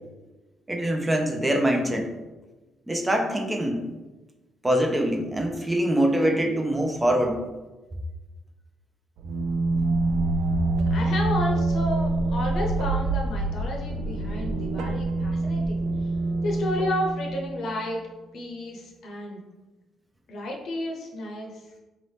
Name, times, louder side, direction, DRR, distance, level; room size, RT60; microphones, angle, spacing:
voice 1, 0.7-2.1 2.9-3.8 4.6-7.4, right 1 dB, 15° right, 3 dB, 0.6 m, -24 dB
sound 1, 9.2-17.7, right 2 dB, 90° right, 0.3 m, -26 dB
voice 2, 10.9-15.8 16.4-18.0 18.3-19.4 20.3-21.6, left 1 dB, 70° left, 0 dB, 0.7 m, -32 dB
4.0 x 2.8 x 3.2 m, 1.2 s
cardioid pair, 90°, 0 cm